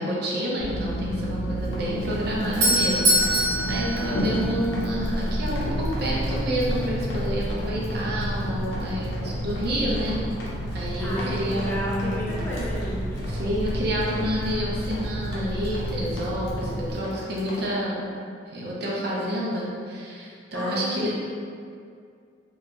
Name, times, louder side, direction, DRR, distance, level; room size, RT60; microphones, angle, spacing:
voice 1, 0.0-10.2 10.7-12.2 13.3-18.1 18.5-21.1, equal, 55° right, -5 dB, 0.5 m, -29 dB
sound 1, 0.6-16.9, equal, 40° left, 0.8 m, -30 dB
Run, 1.6-17.7, equal, 75° left, 0.5 m, -37 dB
Doorbell, 2.2-5.0, right 1 dB, 85° right, 0.8 m, -24 dB
voice 2, 10.9-13.3 20.5-21.1, equal, 10° left, -8 dB, 0.5 m, -33 dB
2.8 x 2.3 x 2.4 m, 2.2 s
head